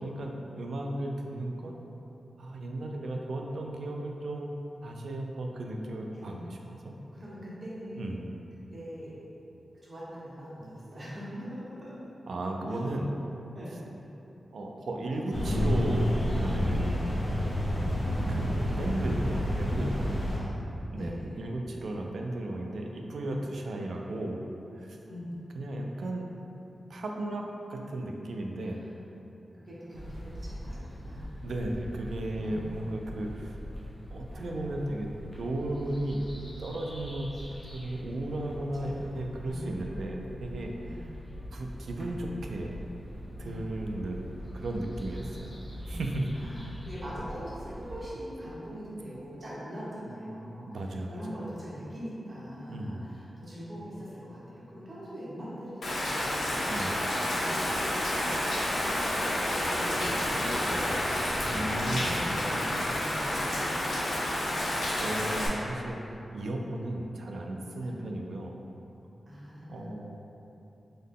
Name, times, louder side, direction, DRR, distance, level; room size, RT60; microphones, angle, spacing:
voice 1, 0.0-1.7 2.4-6.9 8.0-8.3 12.3-13.2 14.5-17.1 18.3-20.1 20.9-24.5 24.7-25.0 25.5-26.3 26.9-28.8 31.4-33.6 34.1-36.2 36.6-37.3 37.7-41.1 41.5-42.8 43.4-44.2 44.5-45.6 45.9-46.3 50.6-51.2 52.7-53.0 56.7-57.0 61.4-62.1 65.0-66.0 66.3-68.5 69.7-70.2, right 1 dB, 85° right, 1 dB, 0.3 m, -35 dB
voice 2, 6.1-6.5 7.1-8.3 8.7-9.1 9.8-12.1 13.5-13.7 15.2-15.7 20.3-21.4 25.1-25.4 28.6-28.8 29.6-31.3 32.3-33.0 33.6-33.7 34.3-34.7 38.7-38.8 39.1-39.2 39.4-39.9 40.8-41.1 43.4-43.6 45.1-45.2 45.7-50.7 51.1-56.6 57.2-58.4 58.7-61.0 61.7-64.3 67.8-68.0 69.3-70.0, equal, 40° right, -9 dB, 0.9 m, -42 dB
sound 1, 15.3-20.4, equal, 50° left, 1.0 m, -28 dB
sound 2, 29.9-48.1, equal, 25° left, 0.8 m, -43 dB
Rain, 55.8-65.5, left 1 dB, 85° left, 0.6 m, -30 dB
3.8 x 2.1 x 3.5 m, 2.9 s
wide cardioid pair, 85°, 0 cm